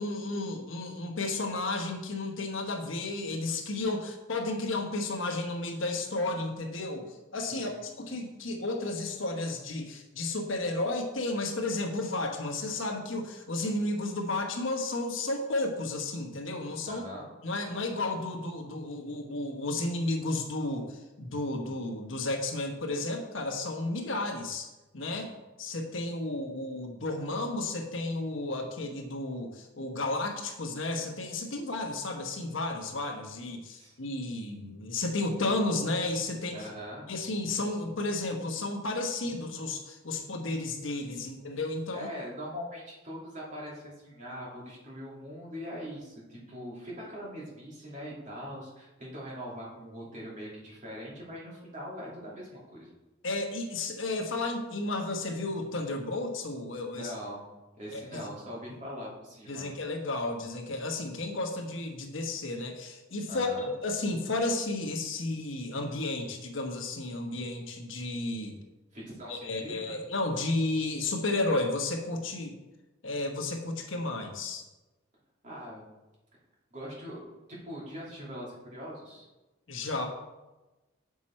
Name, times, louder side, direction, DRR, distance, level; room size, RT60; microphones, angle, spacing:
voice 1, 0.0-17.0 17.4-24.7 24.9-25.3 25.6-36.6 37.1-42.1 53.2-57.1 57.9-58.3 59.5-68.6 69.3-72.6 73.0-74.6 79.7-80.1, left 2 dB, 80° left, 3 dB, 1.2 m, -32 dB
voice 2, 7.5-7.8 16.9-17.3 25.0-25.3 33.8-34.0 36.5-37.1 39.2-39.3 41.1-41.3 41.9-52.9 56.9-57.4 57.7-59.7 63.3-63.7 68.9-70.0 75.4-75.9 76.7-77.2 77.5-79.3, equal, 40° right, -5 dB, 2.5 m, -42 dB
7.4 x 6.1 x 4.3 m, 1.1 s
head